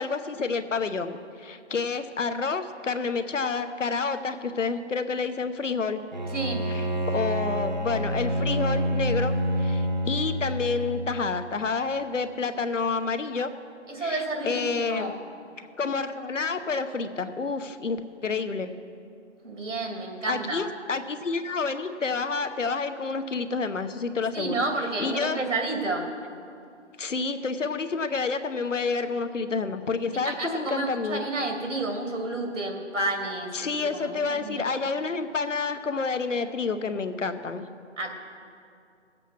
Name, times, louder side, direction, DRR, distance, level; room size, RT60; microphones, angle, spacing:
voice 1, 0.0-6.0 6.7-9.3 9.6-13.5 14.0-15.2 15.8-18.7 20.3-24.6 25.0-25.4 27.0-31.2 33.5-37.6, left 4 dB, 90° left, 10 dB, 1.0 m, -29 dB
Bowed string instrument, 6.1-11.5, equal, 40° right, 0.7 m, -28 dB
voice 2, 6.3-6.7 13.9-15.2 19.4-20.7 24.3-26.2 30.1-34.7 38.0-38.1, right 2 dB, 85° right, 2 dB, 2.6 m, -30 dB
15.5 x 8.2 x 6.1 m, 2.4 s
figure-of-eight pair, 175°, 37 cm